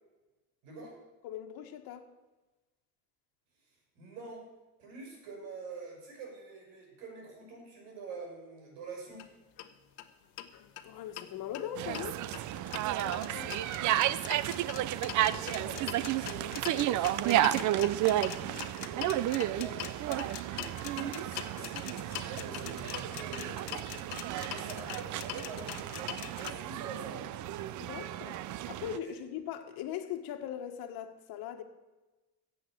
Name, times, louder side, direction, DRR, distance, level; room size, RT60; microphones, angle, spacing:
voice 1, 0.6-1.0 3.6-4.5 4.8-9.3 15.1-27.4 29.0-29.2, right 4 dB, 90° right, 0 dB, 6.0 m, -46 dB
voice 2, 1.2-2.1 10.8-12.2 13.0-13.5 27.8-28.4 28.7-31.6, left 10 dB, 60° left, 5 dB, 1.5 m, -40 dB
sound 1, 9.1-9.3 9.6-9.7 10.0-10.1 10.4-11.3 11.5-26.5, left 13 dB, 90° left, 1.2 m, -43 dB
sound 2, 11.8-29.0, right 13 dB, 45° right, 0.5 m, -32 dB
15.0 x 7.9 x 7.8 m, 1.1 s
cardioid pair, 140°, 41 cm